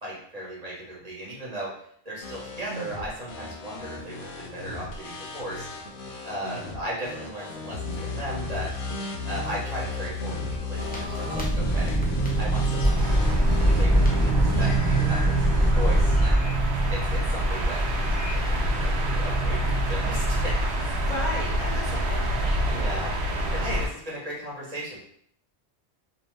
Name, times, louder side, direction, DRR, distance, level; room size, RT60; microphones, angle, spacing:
voice 1, 0.0-1.7 2.0-5.7 6.2-8.7 9.2-11.9 12.4-16.4 16.9-17.8 18.3-18.9 19.2-19.6 19.9-20.9 21.6-21.8 22.6-23.1 23.5-25.0, right 1 dB, 40° right, -6 dB, 1.0 m, -36 dB
sound 1, 2.2-16.3, left 2 dB, 80° left, 0.9 m, -33 dB
sound 2, 10.8-20.6, right 2 dB, 10° left, 0.5 m, -25 dB
sound 3, 12.9-23.9, equal, 85° right, 0.9 m, -27 dB
voice 2, 21.0-22.6, left 1 dB, 50° left, -5 dB, 0.7 m, -34 dB
2.8 x 2.0 x 3.1 m, 0.65 s
omnidirectional pair, 1.1 m